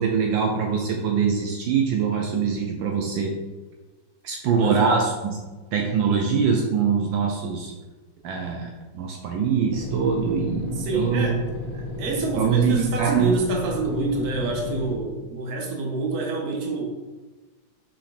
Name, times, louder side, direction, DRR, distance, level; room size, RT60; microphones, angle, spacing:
voice 1, 0.0-3.3 4.2-5.4 5.7-7.7 8.2-11.3 12.3-13.3, right 6 dB, 75° right, 1 dB, 1.4 m, -23 dB
voice 2, 4.6-5.0 10.8-11.4 11.7-16.8, right 3 dB, 55° right, 1 dB, 1.5 m, -27 dB
sound 1, 9.7-15.0, left 2 dB, 45° left, 1.7 m, -33 dB
6.0 x 4.9 x 3.4 m, 1.2 s
omnidirectional pair, 2.2 m